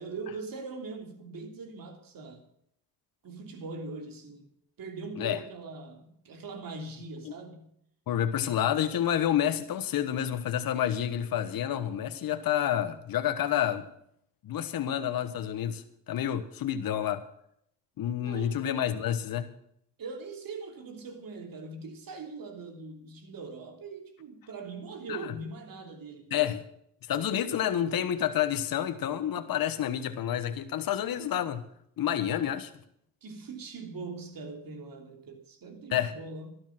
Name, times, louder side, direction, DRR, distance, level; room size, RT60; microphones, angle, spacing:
voice 1, 0.0-2.5 3.2-4.5 4.8-7.7 18.2-18.7 20.0-26.4 31.3-31.4 32.4-32.5 33.2-36.5, right 3 dB, 60° right, 3.2 m, -41 dB
voice 2, 8.1-13.8 14.4-17.2 18.0-19.5 25.1-25.3 26.3-26.6 27.1-31.6 32.0-32.7 35.9-36.1, left 10 dB, 60° left, 1.3 m, -29 dB
12.5 x 12.0 x 6.0 m
supercardioid pair, 70°, 39 cm